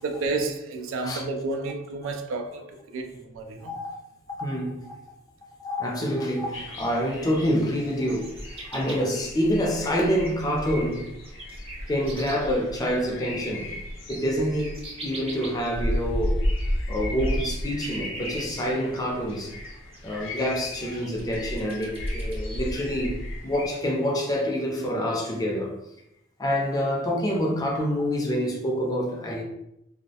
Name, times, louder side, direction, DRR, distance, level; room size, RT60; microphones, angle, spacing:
voice 1, 0.0-3.8, right 3 dB, 90° right, 0.4 m, -31 dB
voice 2, 3.6-4.0 4.4-5.0 5.6-11.1 11.9-13.7 14.1-16.4 16.9-19.5 20.0-25.7 26.4-29.4, equal, 20° left, 0.4 m, -27 dB
sound 1, 6.5-23.7, left 1 dB, 70° left, 0.5 m, -34 dB
sound 2, 8.1-9.2 9.5-10.3 10.6-12.6 13.8-19.0 19.3-19.4 19.6-20.0 20.3-22.5, right 2 dB, 30° right, 0.5 m, -42 dB
2.3 x 2.0 x 2.7 m
head